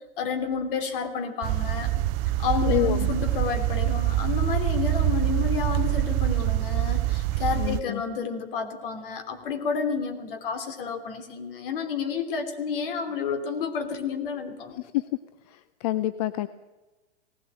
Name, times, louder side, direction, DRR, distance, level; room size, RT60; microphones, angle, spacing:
voice 1, 0.2-1.9 2.4-14.8, left 6 dB, 50° left, 7 dB, 3.2 m, -30 dB
sound 1, 1.4-7.8, right 15 dB, 25° right, 0.6 m, -25 dB
voice 2, 2.7-3.1 7.6-8.0 14.7-15.1 15.5-16.5, left 15 dB, 35° left, 15 dB, 0.6 m, -28 dB
18.5 x 16.5 x 8.8 m, 1.2 s
hypercardioid pair, 135°, 34 cm